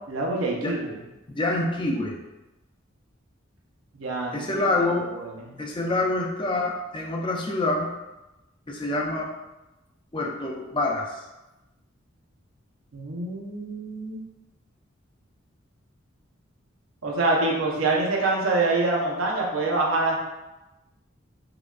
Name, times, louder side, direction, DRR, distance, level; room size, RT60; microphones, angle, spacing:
voice 1, 0.1-1.0 3.9-4.4 12.9-14.2 17.0-20.2, right 2 dB, 80° right, -2 dB, 0.7 m, -25 dB
voice 2, 1.3-2.2 4.3-5.1 5.6-7.9 8.7-9.3 10.1-11.2, left 2 dB, 25° left, -1 dB, 0.4 m, -26 dB
4.8 x 2.2 x 2.4 m, 1.0 s
head